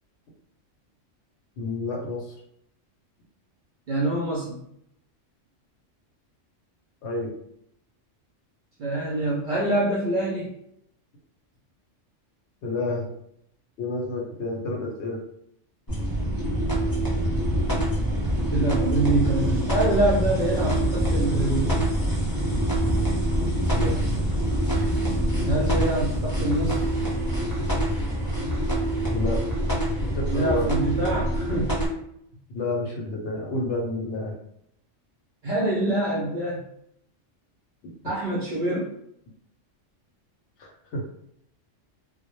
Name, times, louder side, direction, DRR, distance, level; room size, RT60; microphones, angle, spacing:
voice 1, 1.6-2.3 7.0-7.3 12.6-13.1 13.8-15.2 23.7-24.0 29.1-29.4 30.0-30.7 32.5-34.4 37.8-37.9 40.6-41.0, left 2 dB, 65° left, -1 dB, 0.9 m, -29 dB
voice 2, 3.9-4.6 8.8-10.5 18.5-21.9 25.4-26.8 30.3-31.8 35.4-36.6 38.0-38.9, right 2 dB, 60° right, -5 dB, 0.5 m, -25 dB
sound 1, 15.9-31.9, right 1 dB, 20° left, 0.6 m, -25 dB
2.1 x 2.0 x 2.9 m, 0.73 s
omnidirectional pair, 1.3 m